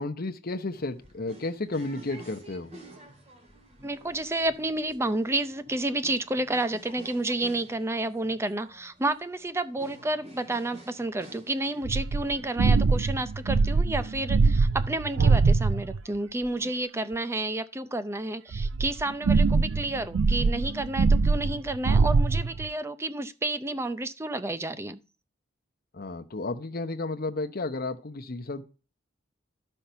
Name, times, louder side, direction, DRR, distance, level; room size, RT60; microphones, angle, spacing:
voice 1, 0.0-2.7 25.9-28.6, left 2 dB, 50° left, 0.9 m, -32 dB
sound 1, 0.7-13.8, right 1 dB, 35° right, 2.2 m, -51 dB
voice 2, 3.8-25.0, right 2 dB, 15° right, 0.5 m, -30 dB
sound 2, 11.8-16.0 18.5-22.7, right 4 dB, 80° right, 0.4 m, -23 dB
12.0 x 5.6 x 5.6 m
head